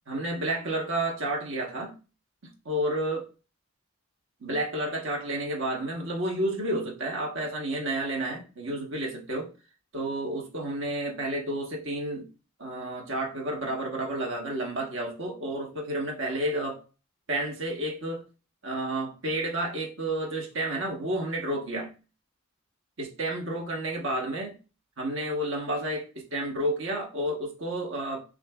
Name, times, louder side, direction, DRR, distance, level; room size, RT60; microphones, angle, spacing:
voice 1, 0.1-2.0 2.4-3.3 4.4-9.5 9.9-12.3 12.6-16.8 17.3-18.2 18.6-21.9 23.0-24.6 25.0-28.2, right 1 dB, 65° right, 1.2 m, -31 dB
6.3 x 2.6 x 2.3 m
head